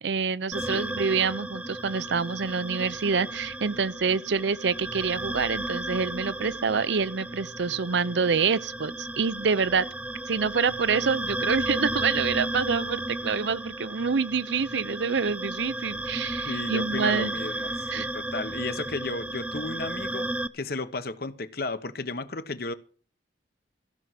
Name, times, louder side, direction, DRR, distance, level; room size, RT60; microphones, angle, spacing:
voice 1, 0.0-9.9 10.3-17.3 17.9-18.1, right 5 dB, 80° right, 0.6 m, -27 dB
sound 1, 0.5-20.5, right 1 dB, 5° right, 0.5 m, -34 dB
voice 2, 0.6-0.9 16.4-20.3 20.5-22.7, left 3 dB, 55° left, 1.0 m, -34 dB
15.5 x 6.2 x 7.4 m
head